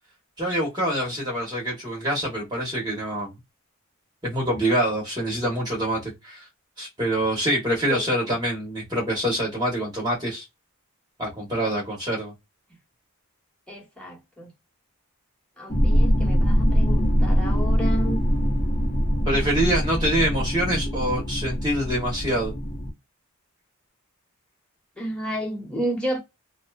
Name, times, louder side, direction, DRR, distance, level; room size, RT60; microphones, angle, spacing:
voice 1, 0.4-3.3 4.2-6.4 6.8-10.4 11.2-12.3 19.2-22.5, right 1 dB, 20° right, 0.8 m, -25 dB
voice 2, 7.9-8.4 13.7-14.5 15.6-18.2 25.0-26.2, equal, 5° left, 1.0 m, -31 dB
sound 1, 15.7-22.9, equal, 35° left, 0.8 m, -23 dB
2.6 x 2.1 x 2.2 m
head